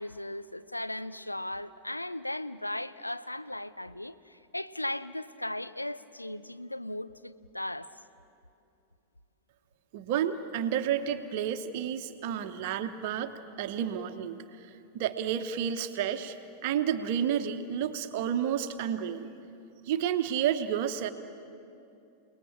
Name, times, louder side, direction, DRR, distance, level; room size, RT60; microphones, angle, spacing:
voice 1, 0.0-7.9, left 1 dB, 85° left, 0.6 m, -37 dB
voice 2, 9.9-13.3 13.6-14.7 14.9-16.3 16.6-19.3 19.9-21.1, right 9 dB, 50° right, 1.0 m, -30 dB
29.0 x 18.5 x 7.4 m
figure-of-eight pair, 90°, 0 cm